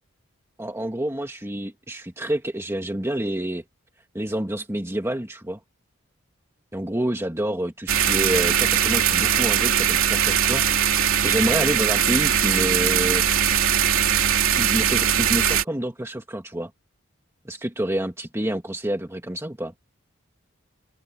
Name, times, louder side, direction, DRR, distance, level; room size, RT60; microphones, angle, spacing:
voice 1, 0.6-3.6 4.1-5.6 6.7-10.7 11.0-13.2 14.6-16.7 17.5-19.7, right 1 dB, 15° right, 1.8 m, -28 dB
sound 1, 7.9-15.6, right 9 dB, 85° right, 2.8 m, -20 dB
head